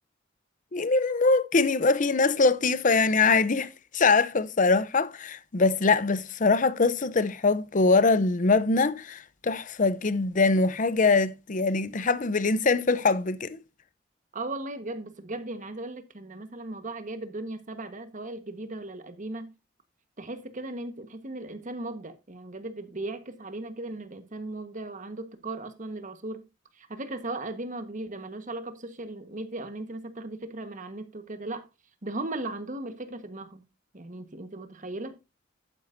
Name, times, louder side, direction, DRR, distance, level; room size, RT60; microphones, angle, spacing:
voice 1, 0.7-13.6, left 3 dB, 45° left, 0.7 m, -23 dB
voice 2, 14.3-19.5 20.2-26.4 26.8-31.7 32.0-33.6 33.9-35.2, right 2 dB, 40° right, 1.4 m, -37 dB
11.5 x 9.2 x 2.7 m
head